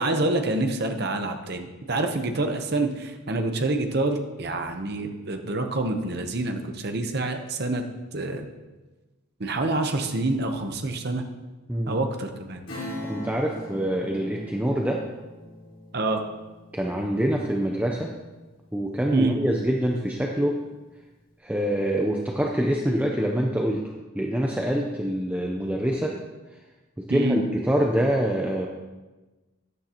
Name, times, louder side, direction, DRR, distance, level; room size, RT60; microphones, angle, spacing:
voice 1, 0.0-7.8 8.1-8.4 9.4-11.2 11.9-12.6 15.9-16.2 19.1-19.3 27.1-27.4, right 2 dB, 50° right, 5 dB, 0.9 m, -27 dB
Acoustic guitar / Strum, 12.7-18.9 19.3-19.4, left 1 dB, 65° left, 3.9 m, -41 dB
voice 2, 12.7-15.0 16.7-18.1 18.7-20.6 21.4-26.1 27.0-28.7, equal, 5° right, 0 dB, 0.6 m, -25 dB
13.0 x 9.5 x 2.9 m, 1.2 s
head